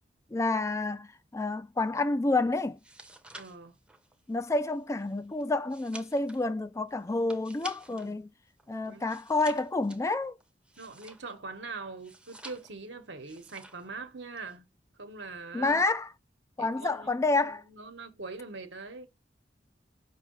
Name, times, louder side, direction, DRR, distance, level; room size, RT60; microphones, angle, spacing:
voice 1, 0.3-2.8 4.3-8.3 8.7-10.3 15.5-16.1 16.6-17.6, left 2 dB, 15° left, 0.3 m, -29 dB
sound 1, 2.7-8.1 8.5-11.5 12.0-12.9 13.2-13.9 14.2-14.6, right 1 dB, 5° right, 0.7 m, -50 dB
voice 2, 3.3-3.7 7.9-8.3 8.9-9.1 10.8-14.7 15.0-15.8 16.6-19.1, right 3 dB, 80° right, 1.2 m, -43 dB
5.6 x 3.1 x 3.1 m
head